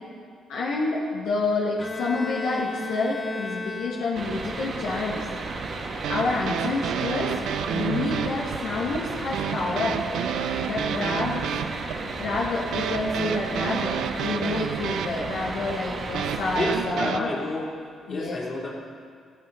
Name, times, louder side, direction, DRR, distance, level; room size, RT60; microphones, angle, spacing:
voice 1, 0.5-5.2 6.1-7.4 7.7-10.0 10.6-11.5 12.2-17.3 18.1-18.4, left 3 dB, 85° left, -4 dB, 1.3 m, -28 dB
Bowed string instrument, 1.8-4.5, left 2 dB, 25° left, 1.4 m, -34 dB
sound 1, 4.1-16.8, right 3 dB, 50° right, 1.5 m, -34 dB
sound 2, 5.6-17.2, right 8 dB, 80° right, 0.5 m, -30 dB
voice 2, 16.5-17.7 18.1-18.7, left 2 dB, 45° left, -3 dB, 3.0 m, -30 dB
14.5 x 7.8 x 5.4 m, 2.1 s
cardioid pair, 90°, 0 cm